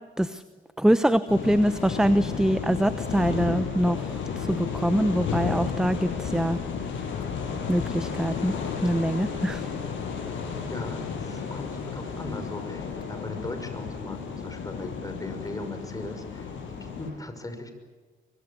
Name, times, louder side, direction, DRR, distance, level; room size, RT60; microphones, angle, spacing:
voice 1, 0.8-4.0 4.4-6.6 7.7-8.5 8.8-9.6, right 1 dB, 5° right, 12 dB, 1.0 m, -24 dB
sound 1, 1.3-17.1, left 6 dB, 75° left, 7.2 m, -33 dB
voice 2, 10.7-17.7, left 2 dB, 15° left, 7 dB, 5.8 m, -38 dB
23.5 x 23.5 x 8.5 m, 1.4 s
cardioid pair, 90°, 20 cm